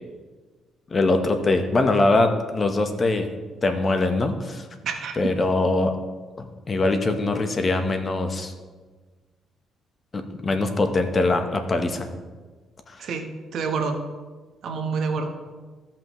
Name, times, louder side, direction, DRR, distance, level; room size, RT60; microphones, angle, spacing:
voice 1, 0.9-3.4 3.6-4.7 5.2-5.9 6.4-8.5 10.1-12.1 12.9-13.1, left 2 dB, 35° left, 6 dB, 1.0 m, -22 dB
voice 2, 4.8-5.2 13.0-14.0 14.6-15.3, right 5 dB, 70° right, 5 dB, 1.0 m, -28 dB
15.0 x 5.8 x 3.1 m, 1.4 s
cardioid pair, 90°, 0 cm